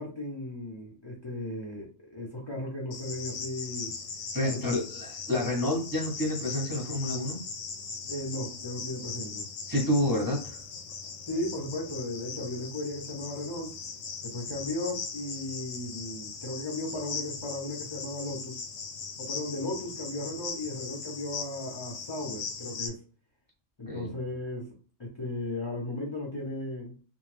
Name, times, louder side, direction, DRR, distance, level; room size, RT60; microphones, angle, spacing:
voice 1, 0.0-3.9 4.4-4.8 8.1-9.5 11.3-13.7 14.2-18.6 19.2-23.0 23.8-24.7 25.0-27.0, left 1 dB, 30° left, -2 dB, 0.5 m, -36 dB
Cricket, 2.9-22.9, left 5 dB, 90° left, 1.0 m, -39 dB
voice 2, 4.3-7.4 9.6-10.6 23.9-24.1, left 1 dB, 20° right, -2 dB, 0.8 m, -29 dB
2.5 x 2.2 x 3.2 m, 0.39 s
omnidirectional pair, 1.3 m